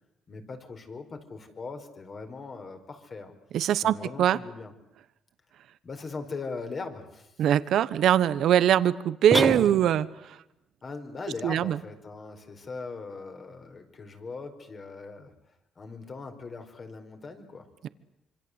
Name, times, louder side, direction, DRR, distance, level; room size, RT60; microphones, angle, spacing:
voice 1, 0.3-3.3 3.8-4.7 5.8-7.5 10.8-15.3 15.8-17.7, left 4 dB, 40° left, 6 dB, 4.9 m, -40 dB
voice 2, 3.5-4.4 7.4-10.4 11.4-11.8, right 10 dB, 75° right, 15 dB, 1.1 m, -22 dB
sound 1, 9.3-10.2, right 1 dB, 5° right, 1.4 m, -27 dB
26.0 x 24.5 x 8.2 m, 0.86 s
cardioid pair, 90°, 0 cm